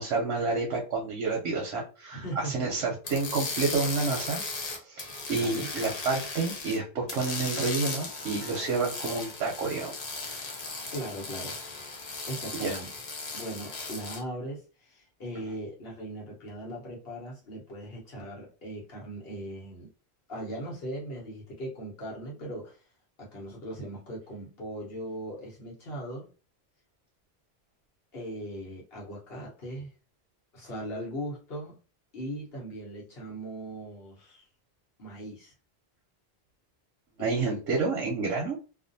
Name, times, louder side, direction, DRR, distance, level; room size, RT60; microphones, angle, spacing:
voice 1, 0.0-4.4 4.8-9.9 10.2-10.6 12.5-12.8 37.2-38.6, right 4 dB, 90° right, -2 dB, 0.9 m, -29 dB
voice 2, 2.1-2.7 5.4-5.7 10.9-11.6 12.0-12.9 13.3-19.9 20.3-22.8 23.2-26.3 28.1-29.9 30.5-31.8 32.1-34.4 35.0-35.5 37.2-37.6, right 1 dB, 65° left, -3 dB, 1.2 m, -39 dB
sound 1, 3.0-6.8 7.1-14.2, left 3 dB, 45° left, 0.7 m, -37 dB
2.5 x 2.4 x 2.5 m, 0.35 s
omnidirectional pair, 1.1 m